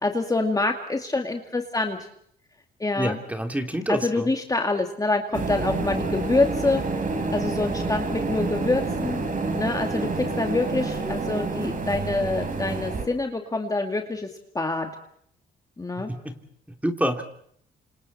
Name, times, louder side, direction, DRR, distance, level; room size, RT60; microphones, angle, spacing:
voice 1, 0.0-2.0 2.8-3.2 3.9-6.8 7.3-9.2 9.5-14.3 14.5-14.9 15.8-16.1, left 2 dB, 20° left, 3 dB, 2.2 m, -26 dB
voice 2, 3.0-4.3 16.0-16.3 16.8-17.2, equal, 5° right, 4 dB, 3.2 m, -27 dB
sound 1, 5.3-13.1, right 3 dB, 45° right, 4.5 m, -28 dB
29.5 x 27.0 x 4.3 m, 0.66 s
cardioid pair, 90°, 20 cm